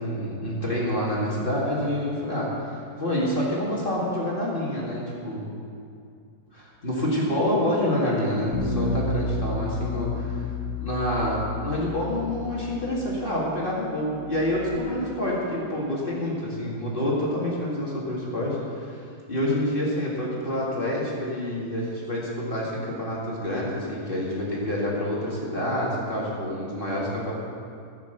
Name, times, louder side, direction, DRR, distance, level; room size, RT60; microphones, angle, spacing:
voice 1, 0.0-5.5 6.5-10.5 10.8-19.0 19.3-27.3, left 1 dB, 35° left, -5 dB, 2.3 m, -27 dB
Bass guitar, 8.5-14.8, left 4 dB, 60° left, 1.2 m, -32 dB
15.0 x 6.4 x 6.7 m, 2.4 s
omnidirectional pair, 1.7 m